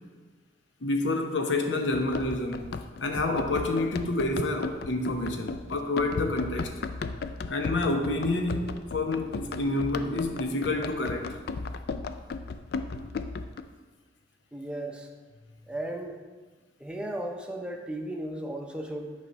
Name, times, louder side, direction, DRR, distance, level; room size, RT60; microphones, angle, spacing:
voice 1, 0.8-2.7 3.0-6.7 7.5-11.3 12.3-12.4 13.0-13.1, left 2 dB, 85° left, 3 dB, 0.9 m, -28 dB
Run, 1.9-13.6, left 4 dB, 55° left, 0.3 m, -35 dB
voice 2, 14.5-15.1 15.7-16.2 16.8-19.1, right 1 dB, 5° right, 2 dB, 0.6 m, -35 dB
8.5 x 3.3 x 5.3 m, 1.4 s
head